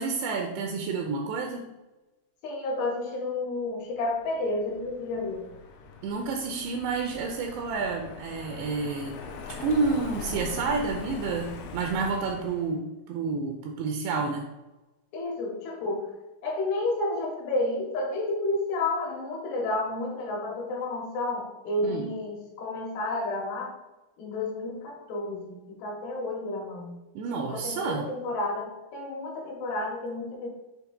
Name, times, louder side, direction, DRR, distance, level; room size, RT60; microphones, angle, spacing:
voice 1, 0.0-1.7 6.0-9.1 9.5-14.5 21.8-22.0 27.2-28.1, right 4 dB, 85° right, 2 dB, 2.4 m, -29 dB
voice 2, 2.4-5.5 15.1-16.1 16.4-23.7 24.2-27.0 27.3-30.5, left 2 dB, 70° left, 0 dB, 2.9 m, -31 dB
Car passing by, 4.2-12.7, left 4 dB, 90° left, 2.2 m, -41 dB
7.6 x 3.2 x 5.0 m, 1.1 s
omnidirectional pair, 5.5 m